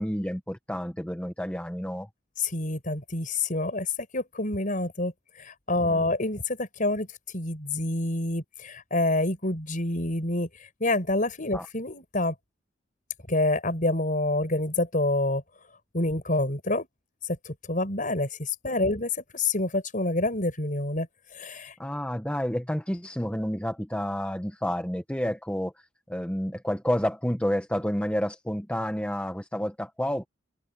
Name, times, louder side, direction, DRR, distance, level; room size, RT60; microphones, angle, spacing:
voice 1, 0.0-2.1 5.8-6.0 11.5-11.7 18.7-18.8 21.8-25.7 26.1-30.3, equal, 5° left, 1.3 m, -30 dB
voice 2, 2.4-3.9 4.1-5.1 5.4-7.1 7.3-10.5 10.8-12.3 13.3-15.4 15.9-16.9 17.3-21.1 21.3-21.7, left 2 dB, 45° left, 5.5 m, -27 dB
head